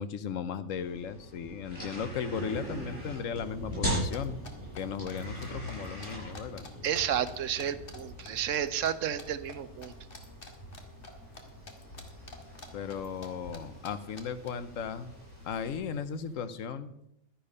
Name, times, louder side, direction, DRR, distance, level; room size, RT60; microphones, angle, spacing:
voice 1, 0.0-4.4 4.8-6.7 12.7-15.1 15.4-16.9, left 7 dB, 90° left, 12 dB, 1.2 m, -36 dB
sound 1, 0.7-15.8, equal, 65° left, 6.2 m, -41 dB
sound 2, 2.4-16.3, left 1 dB, 25° left, 4.2 m, -49 dB
sound 3, 4.1-7.0 7.3-8.9 9.2-9.6 9.8-11.4 11.7-13.3 13.5-13.6 13.8-13.9 14.2-14.5, left 3 dB, 45° left, 1.7 m, -47 dB
voice 2, 6.8-9.9, right 9 dB, 75° right, 14 dB, 1.1 m, -31 dB
11.5 x 10.0 x 5.5 m, 0.81 s
omnidirectional pair, 1.3 m